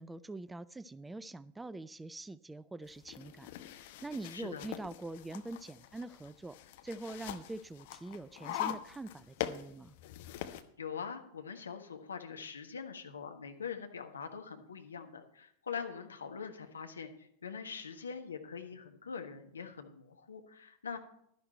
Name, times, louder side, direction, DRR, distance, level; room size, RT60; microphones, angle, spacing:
voice 1, 0.0-6.6 6.8-10.0, right 2 dB, 10° right, 19 dB, 0.3 m, -44 dB
sound 1, 2.9-10.6, left 12 dB, 50° left, 0.9 m, -43 dB
voice 2, 4.3-4.7 10.8-21.0, left 6 dB, 70° left, 6 dB, 1.4 m, -43 dB
12.0 x 10.5 x 4.4 m, 0.70 s
figure-of-eight pair, 90°, 0 cm